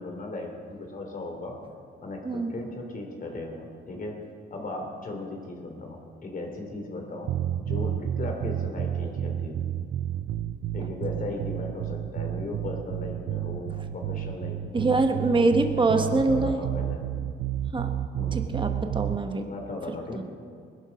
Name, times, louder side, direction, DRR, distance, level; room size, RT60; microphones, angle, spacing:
voice 1, 0.0-1.6 2.0-4.2 4.5-7.3 7.6-9.6 10.7-15.3 15.9-17.0 18.2-18.4 19.5-20.2, left 2 dB, 40° left, 3 dB, 3.2 m, -37 dB
voice 2, 2.2-2.6 14.7-16.6 17.7-17.9 18.3-19.4 20.2-20.3, right 3 dB, 25° right, 5 dB, 1.4 m, -24 dB
sound 1, 7.3-19.2, right 11 dB, 60° right, 0.6 m, -31 dB
20.5 x 12.0 x 5.2 m, 2.3 s
cardioid pair, 115°, 21 cm